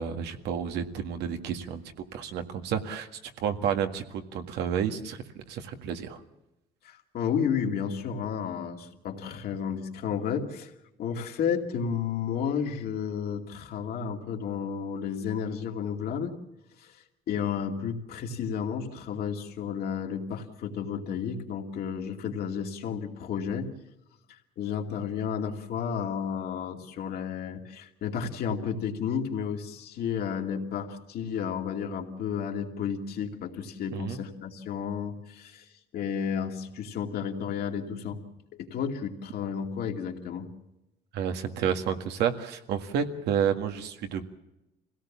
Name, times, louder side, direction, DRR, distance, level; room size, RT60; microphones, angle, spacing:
voice 1, 0.0-1.8 2.1-3.1 3.4-5.2 5.5-6.2 33.9-34.2 41.1-44.3, right 8 dB, 80° right, 6 dB, 1.9 m, -30 dB
voice 2, 6.8-10.7 11.0-16.3 16.8-23.7 24.3-38.2 38.5-40.5, left 7 dB, 65° left, 2 dB, 2.6 m, -32 dB
25.0 x 17.0 x 7.3 m, 0.93 s
cardioid pair, 110°, 17 cm